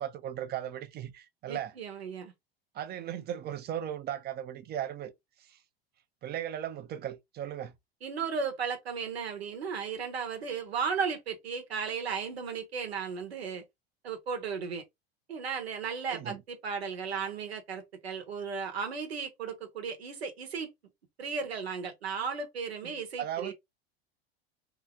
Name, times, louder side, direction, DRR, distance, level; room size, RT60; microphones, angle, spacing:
voice 1, 0.0-1.7 2.7-5.1 5.5-5.6 6.2-7.7 16.1-16.4 22.8-23.5, right 10 dB, 30° right, 0.6 m, -37 dB
voice 2, 1.5-2.3 8.0-13.6 14.0-14.8 15.3-20.7 21.2-23.5, right 6 dB, 85° right, 1.1 m, -35 dB
2.8 x 2.4 x 3.5 m
hypercardioid pair, 90°, 30 cm